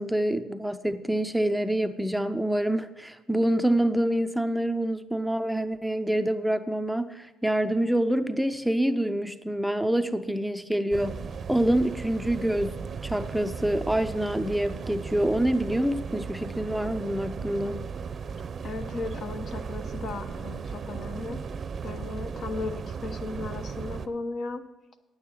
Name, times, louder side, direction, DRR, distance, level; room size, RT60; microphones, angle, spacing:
voice 1, 0.0-11.2 11.5-17.8, right 1 dB, ahead, 9 dB, 0.5 m, -26 dB
sound 1, 10.9-24.1, right 5 dB, 45° right, 0.7 m, -36 dB
voice 2, 18.6-21.4 21.8-24.6, left 3 dB, 55° left, 8 dB, 0.9 m, -36 dB
9.2 x 8.6 x 6.2 m, 1.1 s
supercardioid pair, 80°, 0 cm